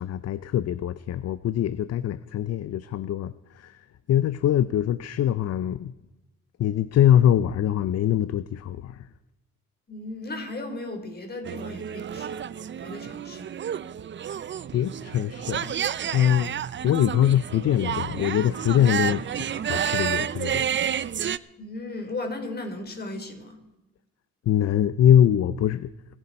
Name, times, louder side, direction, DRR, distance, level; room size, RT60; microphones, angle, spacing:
voice 1, 0.0-5.9 6.6-9.1 14.7-15.7 16.1-20.7 24.5-25.9, left 10 dB, 55° left, 15 dB, 0.6 m, -23 dB
voice 2, 9.9-12.5 12.8-13.5 21.6-23.6, left 2 dB, 30° left, 4 dB, 4.1 m, -36 dB
sound 1, 11.4-21.4, right 9 dB, 40° right, 0.6 m, -30 dB
26.5 x 11.0 x 4.3 m, 0.99 s
cardioid pair, 90°, 30 cm